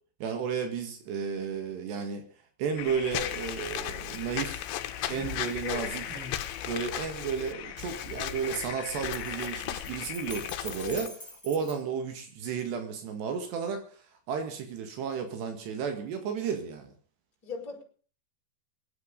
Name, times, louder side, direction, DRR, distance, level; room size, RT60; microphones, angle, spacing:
voice 1, 0.2-2.3 2.6-4.7 5.1-6.0 6.7-11.1 11.4-14.0 14.3-16.9, right 6 dB, 75° right, 6 dB, 4.1 m, -33 dB
sound 1, 2.8-10.5, left 10 dB, 70° left, 3.2 m, -41 dB
Walk footsteps / Squeak, 3.1-11.1, left 12 dB, 90° left, 3.2 m, -37 dB
sound 2, 5.0-5.5 6.0-7.9 8.7-11.7, left 2 dB, ahead, 5.9 m, -45 dB
voice 2, 5.6-6.0 10.8-11.1 17.4-17.8, left 5 dB, 20° left, -3 dB, 5.2 m, -38 dB
22.5 x 9.8 x 5.4 m, 0.42 s
omnidirectional pair, 4.9 m